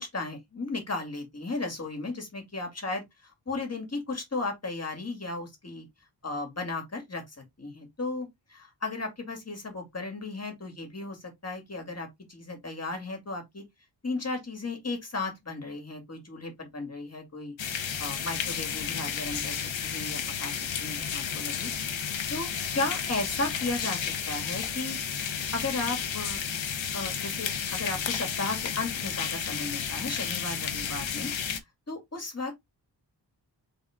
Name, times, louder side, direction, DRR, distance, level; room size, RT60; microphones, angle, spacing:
voice 1, 0.0-5.9 6.2-13.6 14.0-21.7 22.3-25.0 25.5-26.4 26.9-31.3 31.9-32.5, left 3 dB, 35° left, 2.1 m, -35 dB
sound 1, 17.6-31.6, left 7 dB, 90° left, 0.9 m, -32 dB
4.0 x 3.6 x 3.5 m
wide cardioid pair, 105°, 44 cm